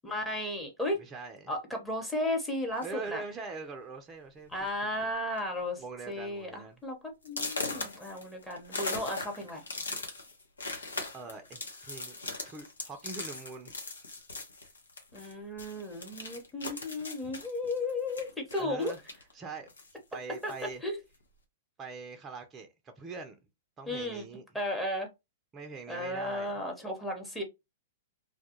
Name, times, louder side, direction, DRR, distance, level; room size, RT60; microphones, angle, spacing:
voice 1, 0.0-1.0 1.5-3.2 4.5-7.0 7.2-9.6 15.1-18.9 20.4-20.5 20.8-21.0 23.9-24.2 24.5-25.1 25.9-27.4, left 1 dB, 5° left, 0.9 m, -34 dB
voice 2, 1.0-1.5 2.8-4.7 5.8-6.8 11.1-12.2 12.4-13.7 18.6-19.0 19.3-19.7 20.1-20.8 21.8-22.7 23.0-23.4 23.8-24.4 25.5-26.6, right 4 dB, 20° right, 0.5 m, -43 dB
sound 1, 2.7-3.1 3.9-4.0 4.4-4.6 4.9-5.4 5.8-5.9 6.4-6.5 7.2-15.3 15.6-19.3 19.7-20.7, left 3 dB, 80° left, 0.8 m, -40 dB
2.3 x 2.1 x 2.9 m
figure-of-eight pair, 110°, 0 cm